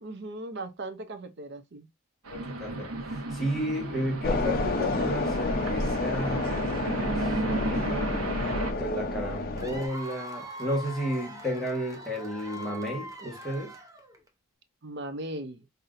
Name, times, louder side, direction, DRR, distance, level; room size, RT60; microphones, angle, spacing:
voice 1, 0.0-1.9 14.8-15.7, right 2 dB, 50° right, 0.6 m, -38 dB
voice 2, 2.3-8.1 8.8-13.7, equal, ahead, 1.2 m, -33 dB
sound 1, 2.3-8.7, right 2 dB, 90° right, 1.0 m, -33 dB
sound 2, 4.2-9.9, left 2 dB, 40° left, 0.6 m, -30 dB
Cheering / Applause / Crowd, 9.6-14.3, right 1 dB, 15° right, 0.8 m, -42 dB
5.5 x 2.7 x 2.5 m
head